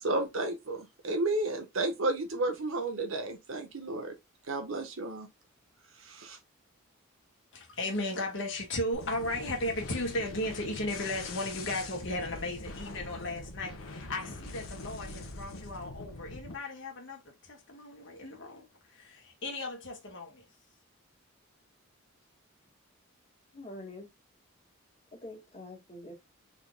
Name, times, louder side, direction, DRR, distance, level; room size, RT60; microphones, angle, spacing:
voice 1, 0.0-4.1 4.5-5.3 6.0-6.4, right 2 dB, 75° right, 1.3 m, -32 dB
voice 2, 7.5-20.4, left 1 dB, 60° left, 1.5 m, -36 dB
sound 1, 8.9-16.6, left 2 dB, 90° left, 1.3 m, -43 dB
voice 3, 23.5-24.1 25.1-26.1, left 1 dB, 30° left, 1.8 m, -45 dB
4.7 x 4.0 x 2.3 m
head